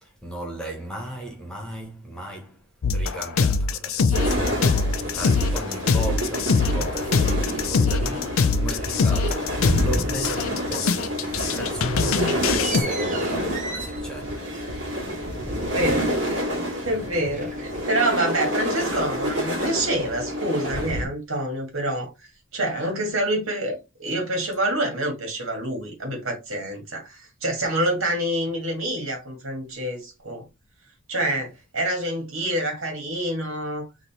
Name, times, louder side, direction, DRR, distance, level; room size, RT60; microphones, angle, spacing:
voice 1, 0.0-14.9, right 1 dB, 5° left, 1.4 m, -36 dB
sound 1, 2.8-12.8, left 4 dB, 80° left, 0.5 m, -23 dB
sound 2, 4.1-21.0, equal, 60° right, 2.4 m, -28 dB
sound 3, 9.2-10.4 10.7-11.2 11.5-16.4 16.7-18.0, right 3 dB, 40° right, 0.8 m, -39 dB
voice 2, 15.7-16.4 16.8-30.4 31.1-33.9, right 1 dB, 75° right, 2.1 m, -27 dB
4.1 x 3.0 x 4.3 m
head